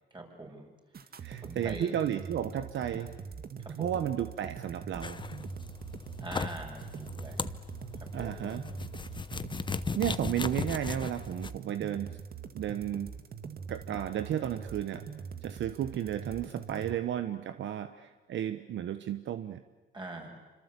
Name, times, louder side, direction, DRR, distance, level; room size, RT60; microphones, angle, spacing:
voice 1, 0.1-0.7 1.4-1.9 2.8-3.1 3.6-3.9 6.2-7.5 8.0-8.5 16.8-17.0 19.9-20.4, right 2 dB, 25° right, 2 dB, 6.7 m, -44 dB
sound 1, 0.9-16.9, right 6 dB, 50° right, 1.9 m, -43 dB
voice 2, 1.2-3.1 3.5-5.2 8.1-8.6 9.9-12.1 12.5-13.1 13.7-15.0 15.4-19.6, right 10 dB, 70° right, 10 dB, 1.2 m, -33 dB
sound 2, 5.0-11.5, left 4 dB, 25° left, 0.9 m, -38 dB
26.5 x 26.0 x 8.4 m, 1.2 s
cardioid pair, 90°, 20 cm